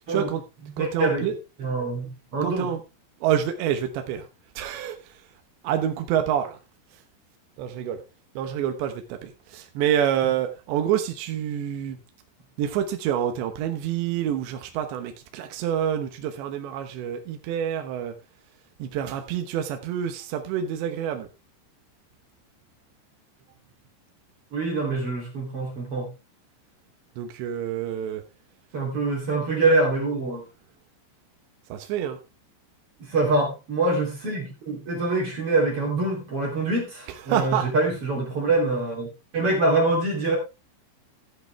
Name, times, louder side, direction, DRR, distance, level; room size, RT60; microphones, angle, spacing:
voice 1, 0.1-0.4 0.8-1.4 2.4-2.8 3.2-4.3 4.6-5.1 5.6-6.6 7.6-8.0 8.4-12.0 12.6-18.1 18.8-21.3 27.2-28.2 31.7-32.2 37.1-37.7, right 9 dB, 70° right, 6 dB, 3.1 m, -27 dB
voice 2, 0.8-1.3 1.6-2.7 24.5-26.1 28.7-30.4 33.0-39.1 39.3-40.4, right 2 dB, 35° right, 0 dB, 3.0 m, -25 dB
13.0 x 8.3 x 3.3 m, 0.28 s
omnidirectional pair, 5.7 m